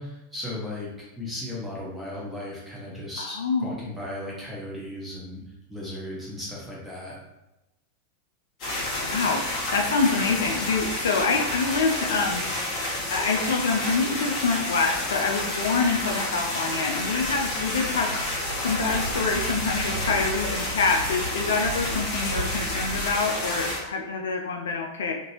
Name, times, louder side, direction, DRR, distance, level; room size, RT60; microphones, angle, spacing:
voice 1, 0.0-5.4 5.7-7.2, left 1 dB, 5° right, -6 dB, 1.2 m, -36 dB
voice 2, 3.2-3.8 9.0-12.8 13.1-25.1, left 4 dB, 65° left, 2 dB, 0.3 m, -26 dB
sound 1, 8.6-23.8, left 1 dB, 35° left, 1.1 m, -30 dB
sound 2, 17.1-23.0, right 2 dB, 65° right, 0.8 m, -36 dB
2.9 x 2.5 x 2.9 m, 0.95 s
figure-of-eight pair, 90°, 0 cm